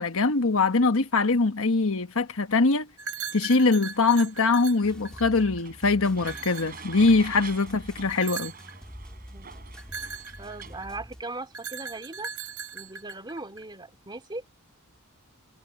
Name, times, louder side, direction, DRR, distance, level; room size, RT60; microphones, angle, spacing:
voice 1, 0.0-2.9 3.3-8.5, left 3 dB, 65° left, 1.3 m, -23 dB
sound 1, 3.0-5.6 6.2-7.4 8.1-8.7 9.8-11.0 11.5-13.6, right 5 dB, 80° right, 2.9 m, -38 dB
sound 2, 3.2-10.8, right 6 dB, 40° right, 6.2 m, -47 dB
sound 3, 4.8-11.2, equal, 5° left, 2.3 m, -45 dB
voice 2, 9.3-9.6 10.4-12.3 12.7-14.4, right 2 dB, 20° right, 2.5 m, -39 dB
head